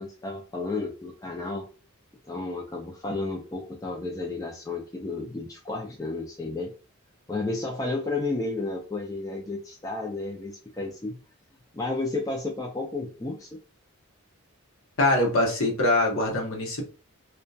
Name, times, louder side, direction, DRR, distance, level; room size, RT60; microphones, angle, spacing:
voice 1, 0.0-1.6 2.2-6.7 7.3-11.2 11.7-13.6, left 3 dB, 15° left, -1 dB, 0.3 m, -32 dB
voice 2, 15.0-16.9, left 1 dB, 65° left, 0 dB, 0.8 m, -23 dB
2.6 x 2.1 x 2.2 m, 0.36 s
head